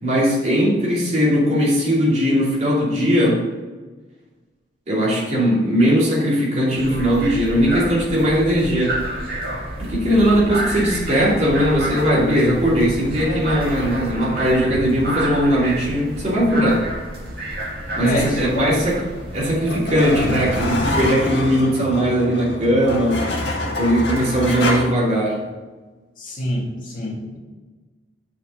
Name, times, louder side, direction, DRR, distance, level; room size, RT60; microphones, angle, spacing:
voice 1, 0.0-3.4 4.9-9.0 9.8-16.9 18.0-19.0 19.3-23.2 23.8-25.4, equal, 40° right, -6 dB, 2.7 m, -19 dB
sound 1, 6.7-21.0, right 1 dB, 55° right, 1.9 m, -30 dB
voice 2, 18.0-18.9 26.2-27.4, left 1 dB, 50° left, -3 dB, 1.9 m, -26 dB
sound 2, 19.0-24.8, left 1 dB, 75° left, 1.7 m, -26 dB
6.4 x 5.5 x 6.4 m, 1.3 s
head